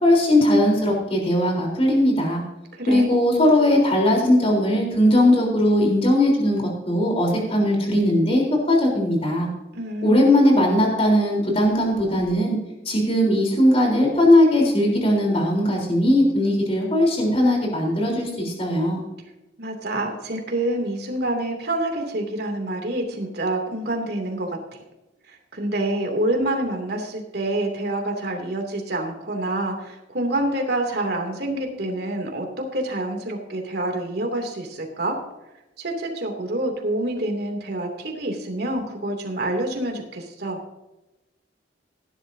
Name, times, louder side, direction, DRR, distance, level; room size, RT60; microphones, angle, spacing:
voice 1, 0.0-2.4 2.9-9.5 10.0-12.6 12.9-19.0, left 1 dB, 35° left, 0 dB, 3.9 m, -19 dB
voice 2, 2.7-3.1 9.7-10.3 19.6-24.6 25.3-32.5 32.7-35.2 35.8-40.6, right 1 dB, 65° right, 2 dB, 2.7 m, -27 dB
17.0 x 11.0 x 2.7 m, 1.0 s
head